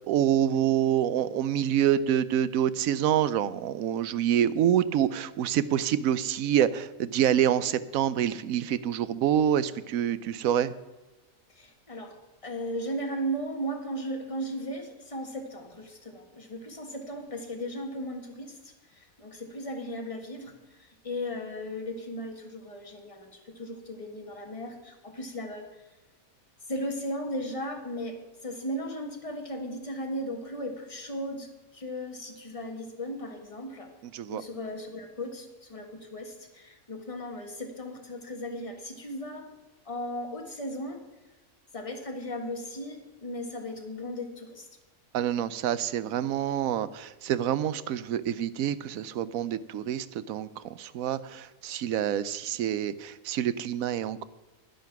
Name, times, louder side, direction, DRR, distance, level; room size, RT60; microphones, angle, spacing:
voice 1, 0.0-10.7 34.1-34.4 45.1-54.2, right 10 dB, 80° right, 16 dB, 1.0 m, -27 dB
voice 2, 11.5-25.8 26.7-31.5 31.7-33.9 34.3-39.5 39.9-41.0 41.7-44.7, equal, 25° left, 2 dB, 1.7 m, -36 dB
10.5 x 10.0 x 5.9 m, 1.1 s
omnidirectional pair, 1.4 m